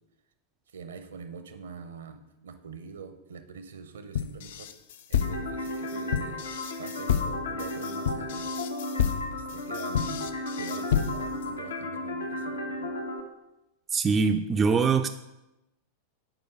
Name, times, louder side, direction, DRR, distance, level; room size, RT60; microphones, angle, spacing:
voice 1, 0.7-4.7 5.1-6.4 6.8-8.5 9.3-12.9, right 5 dB, 65° right, 9 dB, 0.6 m, -44 dB
sound 1, 4.1-11.4, left 8 dB, 55° left, 0.4 m, -30 dB
sound 2, 5.2-13.2, left 2 dB, 75° left, 0.8 m, -34 dB
voice 2, 13.9-15.1, right 5 dB, 20° right, 7 dB, 0.3 m, -23 dB
4.9 x 4.6 x 6.0 m, 0.93 s
figure-of-eight pair, 90°, 0 cm